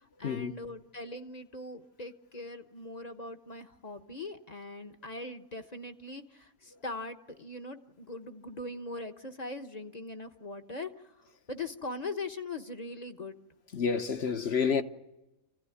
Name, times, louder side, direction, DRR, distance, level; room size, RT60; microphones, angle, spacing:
voice 1, 0.0-13.3, left 2 dB, 30° left, 1.1 m, -41 dB
voice 2, 13.7-14.8, left 6 dB, 50° left, 1.3 m, -29 dB
27.5 x 16.0 x 9.7 m
omnidirectional pair, 1.4 m